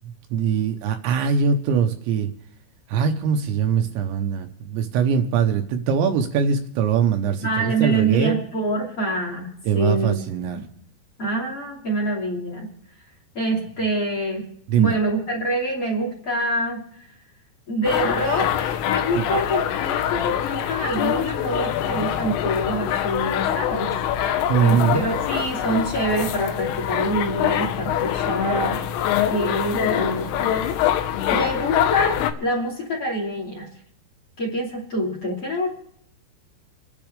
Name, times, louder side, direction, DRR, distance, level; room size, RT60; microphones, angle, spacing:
voice 1, 0.3-2.3 2.9-8.4 9.7-10.7 14.7-15.0 19.1-19.3 24.5-25.1, right 7 dB, 80° right, 5 dB, 3.0 m, -22 dB
voice 2, 7.4-10.2 10.5-10.6 11.2-12.7 13.3-14.5 14.8-17.1 17.7-23.9 24.6-28.9 29.3-30.8 31.3-33.7 34.4-35.7, right 1 dB, 35° left, -1 dB, 3.0 m, -26 dB
sound 1, 17.8-32.3, left 10 dB, 90° left, 3.7 m, -24 dB
29.5 x 10.5 x 3.4 m, 0.70 s
omnidirectional pair, 5.7 m